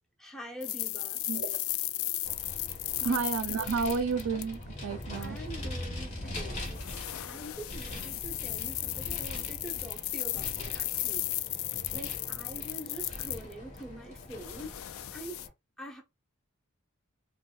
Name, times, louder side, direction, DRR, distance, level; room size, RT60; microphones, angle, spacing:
voice 1, 0.2-1.2 3.0-3.2 5.2-6.7 7.2-11.3 11.9-15.4 15.8-16.0, right 1 dB, ahead, 0.9 m, -45 dB
sound 1, 0.6-4.6 5.0-5.2 6.6-13.8 14.2-15.5, left 16 dB, 70° left, 0.3 m, -35 dB
voice 2, 1.3-1.6 3.0-5.4 8.1-8.2, right 5 dB, 75° right, 0.5 m, -31 dB
Vehicle, 2.2-15.5, left 1 dB, 35° left, 1.4 m, -42 dB
5.3 x 2.3 x 2.3 m
head